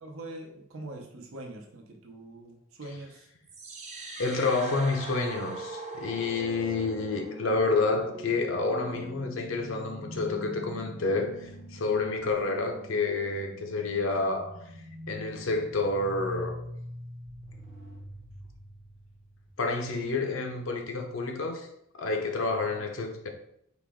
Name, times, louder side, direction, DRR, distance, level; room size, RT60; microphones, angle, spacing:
voice 1, 0.0-3.3 4.6-4.8 22.6-22.9, right 2 dB, 80° right, 0.8 m, -43 dB
sound 1, 3.5-19.5, equal, 35° right, 0.7 m, -42 dB
voice 2, 4.2-14.6 15.1-16.6 19.6-21.7 21.9-23.3, left 3 dB, 70° left, 0.6 m, -29 dB
4.0 x 2.9 x 3.6 m
head